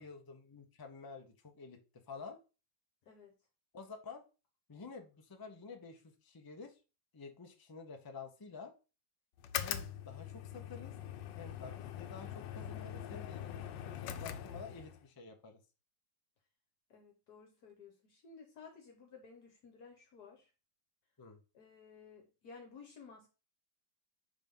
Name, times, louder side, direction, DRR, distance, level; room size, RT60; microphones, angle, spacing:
voice 1, 0.0-1.8 2.1-2.4 3.7-4.2 4.7-6.8 7.1-8.7 9.6-10.9 11.4-15.6 21.2-21.4, left 4 dB, 30° left, 4 dB, 0.4 m, -50 dB
sound 1, 9.4-15.0, left 10 dB, 90° left, 1.3 m, -42 dB
voice 2, 16.9-20.5 21.5-23.3, left 5 dB, 65° left, 2 dB, 1.5 m, -55 dB
4.9 x 3.6 x 5.3 m, 0.32 s
omnidirectional pair, 1.9 m